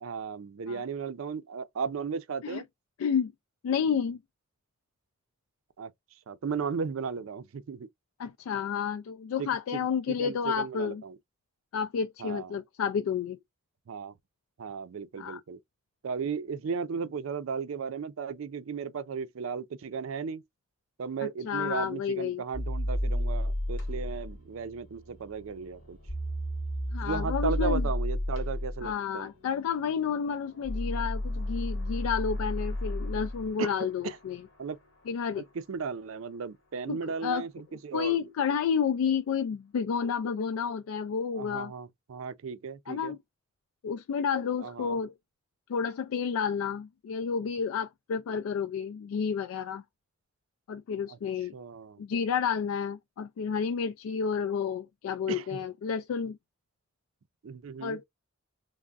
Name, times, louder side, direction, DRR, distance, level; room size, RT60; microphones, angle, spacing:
voice 1, 0.0-2.6 5.8-5.9 6.3-7.9 9.4-11.2 12.2-12.6 13.9-14.1 14.6-15.6 16.0-20.4 21.0-26.0 27.0-29.3 33.6-33.7 34.0-34.2 34.6-34.8 35.4-38.2 41.3-43.1 44.6-45.0 51.1-51.2 51.5-52.0 55.3-55.6 57.4-58.0, right 5 dB, 75° right, 0.4 m, -35 dB
voice 2, 3.0-3.3 3.6-4.2 8.2-11.0 11.7-13.4 15.2-15.4 21.2-22.4 26.9-27.9 28.8-34.4 35.1-35.4 36.9-37.5 37.9-41.7 42.9-43.2 43.8-45.1 45.7-49.8 50.7-51.5 52.0-56.4 57.8-58.0, left 7 dB, 90° left, 0.3 m, -30 dB
sound 1, 22.5-33.8, left 1 dB, 60° left, 0.9 m, -32 dB
3.4 x 2.1 x 2.4 m
head